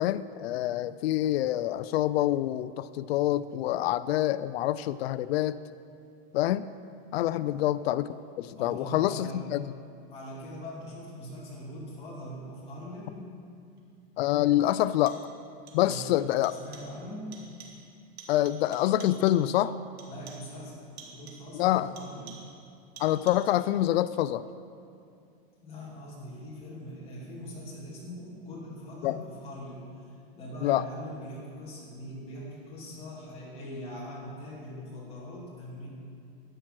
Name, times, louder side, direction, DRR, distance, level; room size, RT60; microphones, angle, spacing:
voice 1, 0.0-5.6 6.3-6.7 7.1-9.7 14.2-15.2 15.7-16.5 18.3-19.8 21.5-21.9 23.0-24.4 29.0-29.2 30.6-30.8, left 14 dB, 80° left, 15 dB, 0.5 m, -26 dB
voice 2, 8.5-9.4 10.1-13.3 15.8-16.2 16.5-17.4 20.0-22.4 25.6-35.9, equal, 20° left, -6 dB, 3.0 m, -42 dB
sound 1, 13.8-13.9 14.8-15.4 15.7-16.2 16.4-17.0 17.3-17.9 18.2-19.5 20.0-20.6 21.0-21.5 22.0-22.6 23.0-23.6, right 5 dB, 85° right, 2.4 m, -50 dB
12.5 x 9.0 x 6.0 m, 2.5 s
supercardioid pair, 165°, 31 cm